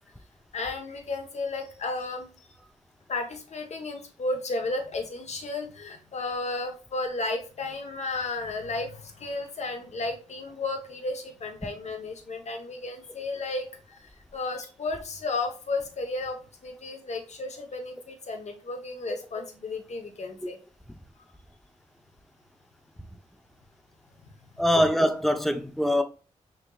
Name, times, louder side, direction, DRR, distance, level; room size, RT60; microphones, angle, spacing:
voice 1, 0.5-2.3 3.1-20.6 24.6-24.7, left 3 dB, 55° left, 1.0 m, -33 dB
voice 2, 24.6-26.0, equal, ahead, 0.5 m, -23 dB
5.0 x 3.0 x 2.3 m
supercardioid pair, 50°, 14 cm